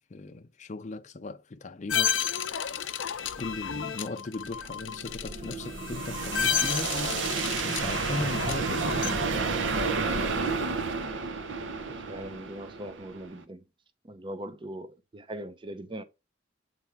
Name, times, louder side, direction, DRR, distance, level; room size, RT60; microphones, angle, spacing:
voice 1, 0.1-2.5 3.4-7.0 7.6-9.6, left 3 dB, 40° left, 0.5 m, -38 dB
sound 1, 1.9-9.1, left 8 dB, 80° left, 0.5 m, -32 dB
sound 2, 4.5-13.4, right 4 dB, 70° right, 0.7 m, -31 dB
voice 2, 11.9-13.6 14.0-16.0, right 1 dB, 25° right, 0.5 m, -40 dB
7.9 x 3.5 x 4.5 m
head